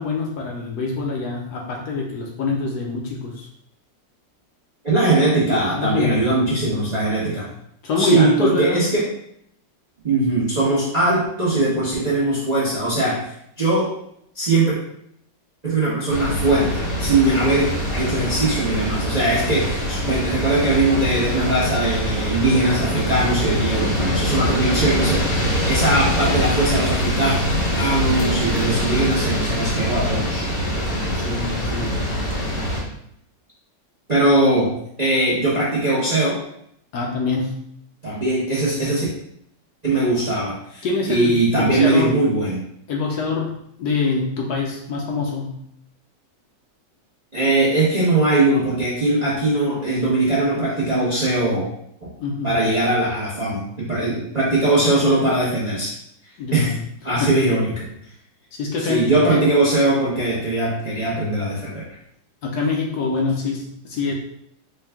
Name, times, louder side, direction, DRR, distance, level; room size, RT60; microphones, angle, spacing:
voice 1, 0.0-3.5 5.8-6.2 7.8-8.8 17.3-17.5 31.1-32.0 36.9-37.5 40.8-42.1 42.9-45.6 52.2-52.6 56.4-56.8 57.2-57.4 58.5-59.4 62.4-64.1, left 4 dB, 70° left, -1 dB, 1.1 m, -25 dB
voice 2, 4.8-7.5 8.0-9.1 10.0-13.9 14.3-14.8 15.6-27.3 27.8-30.4 34.1-34.7 35.0-36.4 38.0-39.1 39.8-42.6 47.3-51.6 52.4-55.9 56.5-56.7 57.0-57.9 58.8-61.8, right 2 dB, 40° right, -7 dB, 0.5 m, -20 dB
sound 1, 16.1-32.8, equal, 40° left, 0.9 m, -23 dB
4.5 x 2.3 x 3.4 m, 0.72 s
omnidirectional pair, 2.0 m